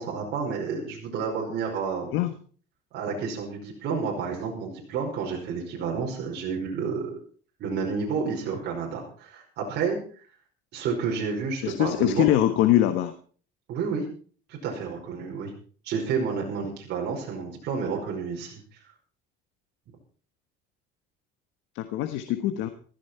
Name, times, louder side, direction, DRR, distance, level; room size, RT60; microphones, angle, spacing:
voice 1, 0.0-2.1 2.9-7.2 7.6-10.0 10.7-12.2 13.7-14.0 14.5-15.5 15.8-18.6, right 5 dB, 60° right, -1 dB, 5.2 m, -30 dB
voice 2, 11.6-13.1 21.7-22.7, left 13 dB, 80° left, 8 dB, 1.5 m, -23 dB
15.0 x 14.5 x 4.5 m, 0.42 s
cardioid pair, 135°, 19 cm